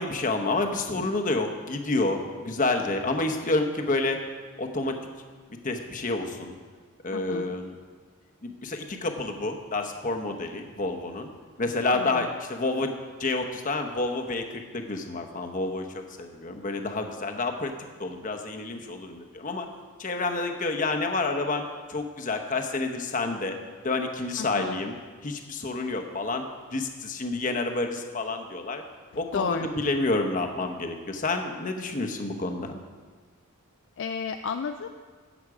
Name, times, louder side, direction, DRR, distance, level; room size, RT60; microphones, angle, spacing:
voice 1, 0.0-4.2 4.6-4.9 5.6-6.6 7.0-7.7 8.4-11.3 11.6-12.9 13.2-17.7 18.0-19.7 20.0-21.6 21.9-23.6 23.8-25.0 25.2-26.4 26.7-28.8 29.2-29.5 29.8-32.8, left 2 dB, 35° left, 4 dB, 0.9 m, -29 dB
voice 2, 7.1-7.6 11.9-12.3 24.4-24.8 29.3-29.7 34.0-34.9, left 5 dB, 55° left, 7 dB, 0.3 m, -32 dB
11.0 x 8.0 x 4.8 m, 1.5 s
head